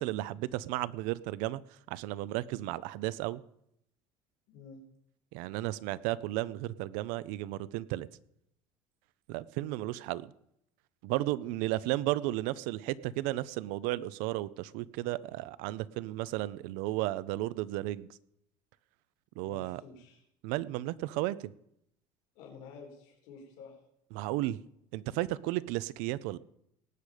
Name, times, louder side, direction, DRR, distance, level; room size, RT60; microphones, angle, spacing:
voice 1, 0.0-1.6 1.9-3.4 5.3-8.1 9.3-10.3 11.0-18.1 19.4-19.8 20.4-21.5 24.1-24.6 24.9-26.4, right 16 dB, 85° right, 18 dB, 0.6 m, -34 dB
voice 2, 4.5-4.8 19.4-20.2 22.4-23.8, left 5 dB, 75° left, 1 dB, 3.7 m, -50 dB
19.0 x 8.5 x 5.0 m, 0.75 s
cardioid pair, 175°, 14 cm